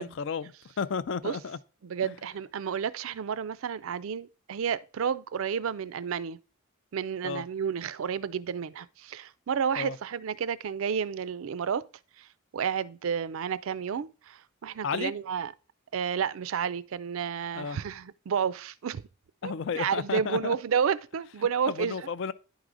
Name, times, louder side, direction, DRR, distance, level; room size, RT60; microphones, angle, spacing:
voice 1, 0.0-1.6 2.0-2.1 7.2-7.4 9.8-10.0 14.8-15.1 17.6-17.8 19.4-20.6 21.7-22.3, left 6 dB, 55° left, 0.4 m, -33 dB
voice 2, 1.8-6.4 6.9-11.8 12.2-12.3 12.5-15.5 15.9-19.0 19.4-21.9, right 7 dB, 70° right, 0.4 m, -31 dB
10.5 x 4.8 x 3.8 m
head